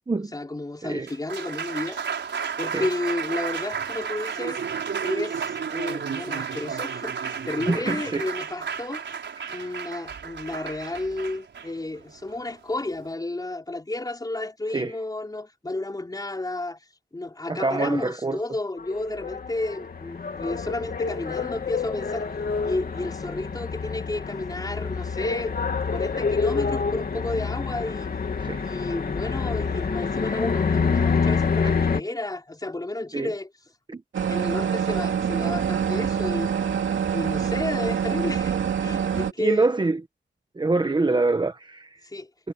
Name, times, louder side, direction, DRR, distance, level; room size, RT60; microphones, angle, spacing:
voice 1, 0.2-2.2 2.6-4.6 5.0-9.0 9.5-16.8 17.1-22.3 22.6-25.6 25.9-28.1 28.6-33.5 34.3-36.5 37.1-38.5 38.8-39.7 42.0-42.3, left 2 dB, 20° left, 4.5 m, -32 dB
Applause, 0.9-13.1, right 6 dB, 70° right, 5.7 m, -32 dB
voice 2, 7.7-8.2 9.4-9.7 14.7-14.9 17.5-18.4 28.4-28.6 31.6-31.7 33.1-33.3 33.9-34.0 39.4-40.0 40.6-41.9 42.4-42.5, right 3 dB, 25° right, 1.3 m, -25 dB
sound 1, 18.8-32.0, left 5 dB, 50° left, 2.9 m, -27 dB
sound 2, 34.1-39.3, right 7 dB, 90° right, 2.7 m, -25 dB
wide cardioid pair, 130°, 19 cm